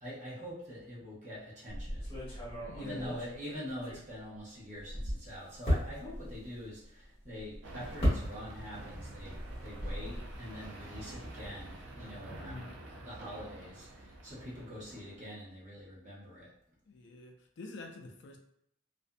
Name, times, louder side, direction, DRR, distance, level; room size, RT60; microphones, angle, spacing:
voice 1, 0.0-12.7 13.0-16.5, equal, 35° right, -7 dB, 1.0 m, -45 dB
sound 1, 1.7-4.4 4.7-8.8 9.1-10.4, equal, 25° left, 1.2 m, -36 dB
voice 2, 2.7-3.2 12.3-12.8 16.9-18.4, left 2 dB, 55° left, 2 dB, 0.4 m, -46 dB
sound 2, 7.6-15.2, right 1 dB, 60° right, 0.5 m, -47 dB
2.5 x 2.5 x 2.2 m, 0.73 s
head